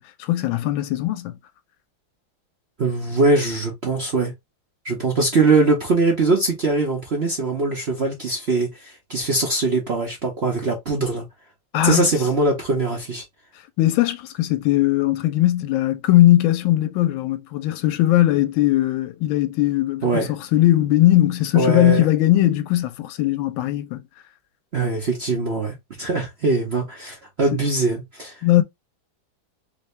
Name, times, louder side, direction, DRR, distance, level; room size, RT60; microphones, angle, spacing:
voice 1, 0.0-1.4 11.7-12.1 13.8-24.0 27.5-27.6 28.4-28.6, left 15 dB, 80° left, 1.4 m, -19 dB
voice 2, 2.8-4.3 4.8-11.2 11.8-13.2 20.0-20.3 21.5-22.1 24.7-28.3, right 3 dB, 50° right, 0.8 m, -22 dB
3.3 x 2.7 x 3.2 m
omnidirectional pair, 2.2 m